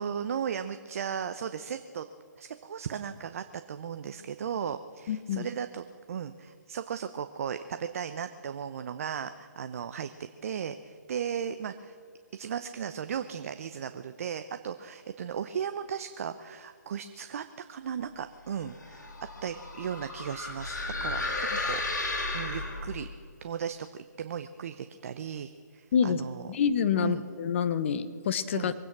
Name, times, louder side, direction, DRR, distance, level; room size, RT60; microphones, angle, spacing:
voice 1, 0.0-2.1 2.4-10.1 10.4-12.0 12.3-19.1 19.4-21.8 22.3-23.1 23.4-26.5 27.0-27.2 28.5-28.7, right 8 dB, 50° right, 10 dB, 0.7 m, -36 dB
voice 2, 5.1-5.5 25.9-26.2 26.5-28.7, left 7 dB, 40° left, 12 dB, 0.9 m, -27 dB
sound 1, 18.6-23.1, left 2 dB, 75° left, 4.1 m, -34 dB
23.5 x 9.2 x 6.0 m, 2.2 s
hypercardioid pair, 150°, 10 cm